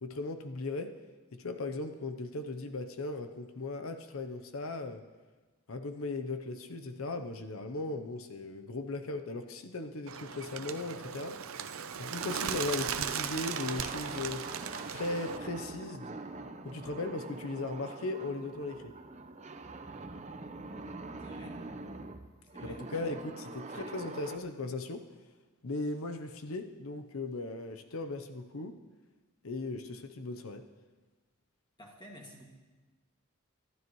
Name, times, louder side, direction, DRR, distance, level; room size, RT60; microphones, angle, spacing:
voice 1, 0.0-0.9 1.3-5.0 5.7-11.4 11.9-14.5 14.9-16.2 16.6-18.9 22.6-25.0 25.6-28.8 29.4-30.6, left 2 dB, 80° left, 7 dB, 0.8 m, -37 dB
Bird, 10.1-15.4, right 7 dB, 85° right, 0.7 m, -37 dB
sound 1, 12.2-24.4, right 3 dB, 35° right, 0.7 m, -44 dB
voice 2, 21.2-21.6 22.5-22.8 23.7-24.1 31.8-32.4, equal, 20° left, -1 dB, 2.1 m, -52 dB
25.0 x 12.5 x 3.1 m, 1.3 s
head